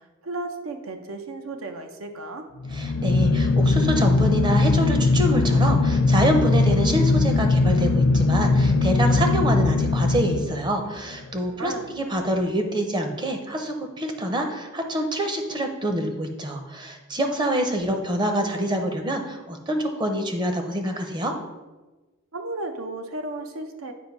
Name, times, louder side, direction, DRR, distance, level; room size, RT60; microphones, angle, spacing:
voice 1, 0.0-2.5 11.6-11.9 22.3-23.9, right 2 dB, 75° right, 6 dB, 0.7 m, -34 dB
sound 1, 2.6-11.0, left 3 dB, 80° left, 0.5 m, -20 dB
voice 2, 2.7-21.3, equal, 20° right, 4 dB, 0.7 m, -26 dB
7.7 x 2.6 x 5.2 m, 1.2 s
head